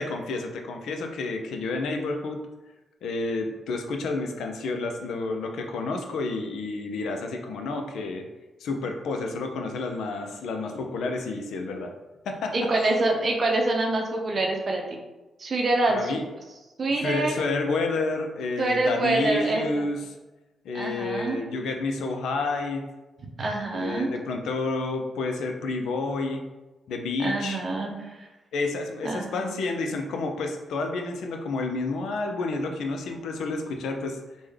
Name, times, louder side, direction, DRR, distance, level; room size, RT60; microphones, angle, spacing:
voice 1, 0.0-2.4 3.0-8.2 8.6-11.9 12.2-12.5 15.9-16.2 17.0-20.0 20.6-22.8 23.7-26.4 26.9-27.6 28.5-34.2, left 3 dB, 80° left, 4 dB, 0.4 m, -30 dB
voice 2, 12.5-15.0 15.4-16.2 16.8-17.4 18.6-19.8 20.7-21.4 23.4-24.1 27.2-28.3 29.0-29.5, right 2 dB, 50° right, 1 dB, 0.6 m, -26 dB
3.4 x 2.2 x 3.2 m, 1.1 s
supercardioid pair, 50°, 0 cm